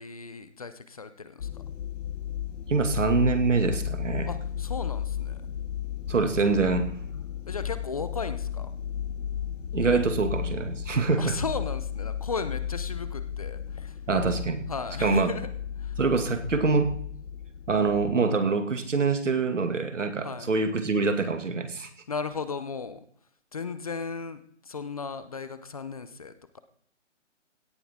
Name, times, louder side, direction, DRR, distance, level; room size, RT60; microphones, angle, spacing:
voice 1, 0.0-1.6 4.3-5.4 7.5-8.7 11.2-14.0 14.7-15.5 15.8-15.9 20.2-20.5 22.1-23.0 23.5-26.6, left 5 dB, 30° left, 12 dB, 0.6 m, -36 dB
sound 1, 1.4-18.2, left 9 dB, 80° left, 0.7 m, -34 dB
voice 2, 2.7-4.3 6.1-6.9 9.7-11.4 14.1-14.7 15.0-15.3 16.0-16.9 17.7-21.9, right 4 dB, 80° right, 8 dB, 2.3 m, -25 dB
17.0 x 10.0 x 3.7 m, 0.63 s
hypercardioid pair, 160°, 37 cm